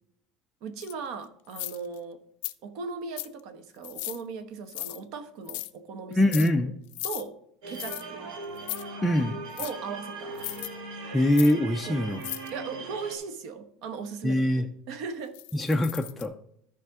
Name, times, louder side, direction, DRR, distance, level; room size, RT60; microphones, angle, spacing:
voice 1, 0.6-2.2 2.6-6.2 7.0-7.4 7.7-8.4 9.6-10.5 11.9-12.2 12.5-15.4, right 5 dB, 55° right, 10 dB, 1.0 m, -38 dB
sound 1, 0.8-0.9 1.5-2.0 2.4-2.5 3.2-3.4 3.8-4.2 4.7-5.0 5.5-5.7 6.1-6.5 6.9-7.2 7.7-8.0 8.6-8.8 9.6-9.7 10.4-10.7 11.3-11.5 12.2-12.5 15.3-16.3, left 20 dB, 80° left, 0.4 m, -36 dB
voice 2, 6.1-6.7 9.0-9.4 11.1-12.2 14.2-14.7 15.5-16.4, left 1 dB, 5° left, 2 dB, 0.4 m, -23 dB
sound 2, 7.6-13.2, right 3 dB, 70° right, 1.6 m, -39 dB
13.5 x 5.0 x 3.5 m, 0.72 s
cardioid pair, 165°, 0 cm